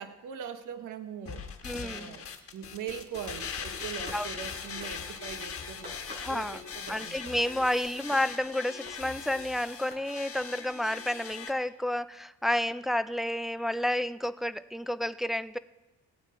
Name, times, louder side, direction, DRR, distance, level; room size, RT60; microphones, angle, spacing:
voice 1, 0.0-1.5 1.8-7.3, right 8 dB, 85° right, 9 dB, 1.1 m, -41 dB
sound 1, 1.3-11.5, left 6 dB, 50° left, 1.4 m, -40 dB
voice 2, 1.6-2.2 4.1-4.3 6.2-6.6 6.9-15.6, left 1 dB, ahead, 13 dB, 0.3 m, -30 dB
Clapping hands, 3.8-4.5 4.8-5.0 5.8-6.3 6.9-7.2 7.8-8.3 8.9-9.0 9.9-10.0, equal, 35° right, 4.9 m, -46 dB
sound 2, 4.4-11.5, equal, 25° left, 1.5 m, -56 dB
18.0 x 9.3 x 3.7 m, 1.1 s
cardioid pair, 90°, 30 cm